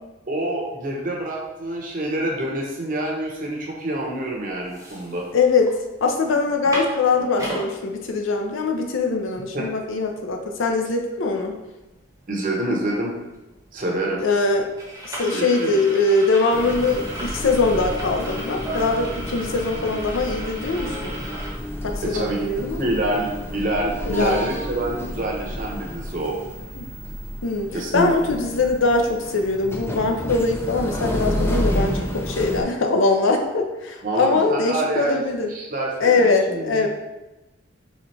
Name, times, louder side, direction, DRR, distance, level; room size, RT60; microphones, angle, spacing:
voice 1, 0.3-5.2 9.5-9.7 12.3-13.2 13.7-14.2 15.3-15.8 22.0-22.5 22.8-26.3 27.7-28.1 34.0-35.2 35.5-36.9, right 1 dB, 40° right, -1 dB, 0.9 m, -27 dB
sound 1, 4.1-4.2 4.5-5.7 6.1-6.2 6.5-7.7 8.3-8.4 8.7-21.5, right 1 dB, 15° right, 0.8 m, -36 dB
voice 2, 5.3-5.8 6.0-11.6 14.2-14.7 15.0-21.2 21.8-22.9 24.1-24.5 26.7-26.9 27.4-35.5 36.0-36.9, left 3 dB, 80° left, 3 dB, 0.6 m, -22 dB
sound 2, 16.5-32.6, equal, 10° left, 0.3 m, -30 dB
4.2 x 3.5 x 3.2 m, 1.0 s
head